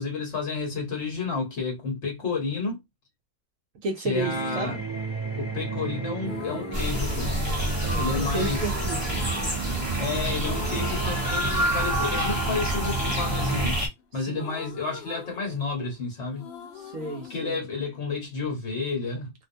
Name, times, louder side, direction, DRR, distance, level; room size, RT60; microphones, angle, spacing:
voice 1, 0.0-2.8 4.0-4.8 5.4-7.3 8.0-8.7 10.0-13.8 14.1-16.5 17.3-19.3, left 4 dB, 50° left, 1.2 m, -31 dB
voice 2, 3.8-4.8 7.8-9.2 14.2-14.5 16.7-17.6, right 3 dB, 65° right, 1.0 m, -33 dB
sound 1, 4.1-13.7, right 3 dB, 35° right, 1.1 m, -34 dB
sound 2, 6.2-7.9 8.3-10.1 10.4-11.9 12.3-16.0 16.3-18.4, left 7 dB, 70° left, 0.6 m, -42 dB
sound 3, 6.7-13.9, right 1 dB, 15° right, 0.8 m, -27 dB
2.6 x 2.1 x 2.6 m
omnidirectional pair, 1.6 m